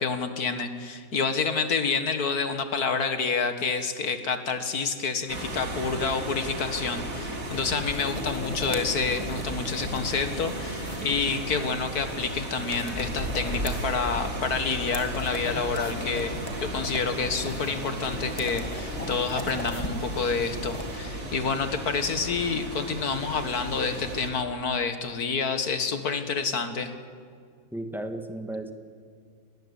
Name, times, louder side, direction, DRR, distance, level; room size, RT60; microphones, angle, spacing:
voice 1, 0.0-26.9, left 5 dB, 55° left, 9 dB, 2.2 m, -28 dB
sound 1, 5.3-24.3, right 1 dB, 50° right, 3.0 m, -35 dB
sound 2, 7.4-21.0, left 1 dB, 20° left, 2.4 m, -38 dB
voice 2, 27.7-28.7, right 1 dB, ahead, 6 dB, 1.6 m, -35 dB
28.0 x 20.0 x 8.4 m, 2.1 s
omnidirectional pair, 1.9 m